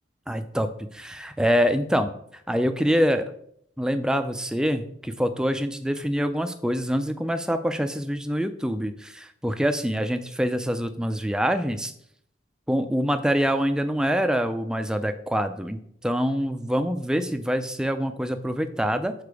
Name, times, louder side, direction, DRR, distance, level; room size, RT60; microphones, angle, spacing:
voice 1, 0.3-2.1 2.5-3.3 3.8-11.9 12.7-19.1, equal, 5° right, 8 dB, 0.4 m, -25 dB
6.9 x 4.7 x 4.7 m, 0.69 s
head